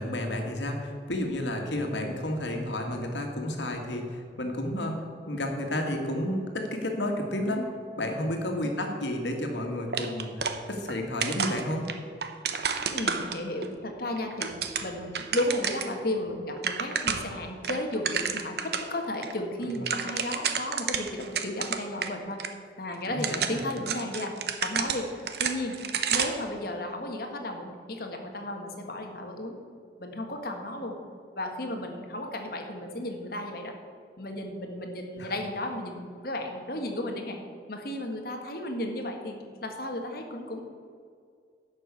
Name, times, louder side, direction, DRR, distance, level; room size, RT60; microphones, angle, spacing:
voice 1, 0.0-7.7 8.0-11.9 19.6-19.8 23.1-23.6 35.2-35.3, left 1 dB, 80° left, 3 dB, 1.9 m, -31 dB
sound 1, 9.9-11.0 11.2-13.7 14.2-16.0 16.3-16.4 16.6-17.4 17.6-18.9 19.2-19.3 19.6-22.1 22.4-22.5 23.1-26.5, right 6 dB, 60° right, 0.9 m, -30 dB
voice 2, 12.9-14.5 14.8-22.4 22.8-25.8 26.1-29.6 30.0-31.0 31.3-33.7 34.2-37.4 37.7-40.6, left 1 dB, 55° left, 3 dB, 1.6 m, -34 dB
11.0 x 6.2 x 8.3 m, 2.2 s
head